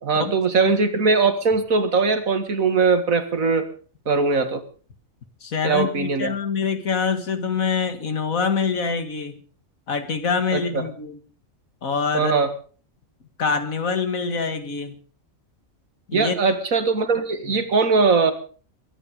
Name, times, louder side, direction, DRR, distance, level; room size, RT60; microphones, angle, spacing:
voice 1, 0.0-3.7 4.1-4.6 5.6-6.3 10.5-10.8 12.1-12.5 16.1-18.3, right 4 dB, 85° right, 9 dB, 2.3 m, -20 dB
voice 2, 5.4-9.4 9.9-11.2 11.8-12.3 13.4-15.0 16.1-16.6 17.4-17.6, left 5 dB, 80° left, 9 dB, 2.2 m, -25 dB
22.0 x 10.0 x 5.2 m, 0.39 s
omnidirectional pair, 1.4 m